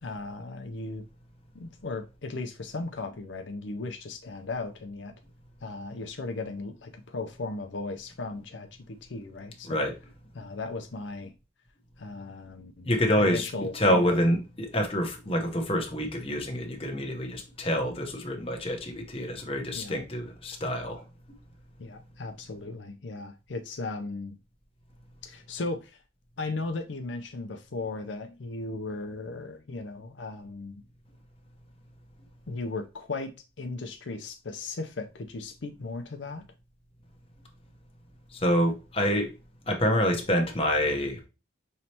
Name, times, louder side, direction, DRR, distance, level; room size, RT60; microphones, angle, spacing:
voice 1, 0.0-1.0 1.5-5.1 5.6-9.8 10.3-11.3 12.0-12.9 13.2-14.2 19.7-20.0 21.8-24.4 25.2-26.0 26.4-30.8 32.5-33.3 33.6-36.4, left 3 dB, 75° left, 0.6 m, -36 dB
voice 2, 12.8-21.1 38.3-39.3 39.7-41.2, equal, 30° left, 1.0 m, -27 dB
5.6 x 3.2 x 2.9 m
head